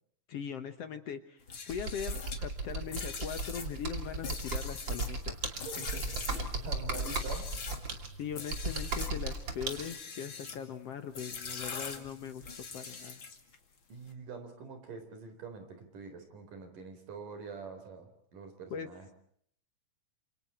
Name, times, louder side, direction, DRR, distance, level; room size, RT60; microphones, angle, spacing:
voice 1, 0.3-5.4 8.2-13.2 18.7-18.9, left 7 dB, 60° left, 9 dB, 1.9 m, -40 dB
sound 1, 1.4-7.9 8.3-9.2 9.6-10.6 11.1-13.6, left 5 dB, 40° left, 2.8 m, -42 dB
Computer keyboard, 1.7-9.8, right 3 dB, 35° right, 3.1 m, -36 dB
voice 2, 5.6-7.5 13.9-19.1, right 4 dB, 75° right, 7 dB, 5.7 m, -45 dB
29.0 x 28.0 x 4.4 m, 0.66 s
omnidirectional pair, 3.7 m